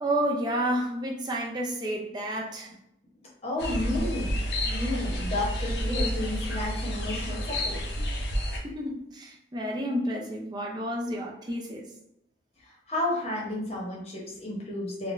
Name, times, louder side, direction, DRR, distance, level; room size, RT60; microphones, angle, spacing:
voice 1, 0.0-2.7 8.6-11.8, right 1 dB, 25° right, -1 dB, 0.5 m, -30 dB
voice 2, 3.4-7.8 12.9-15.1, left 2 dB, 35° left, -3 dB, 0.8 m, -32 dB
sound 1, 3.6-8.6, equal, 70° left, 0.6 m, -30 dB
3.6 x 2.2 x 2.5 m, 0.80 s
head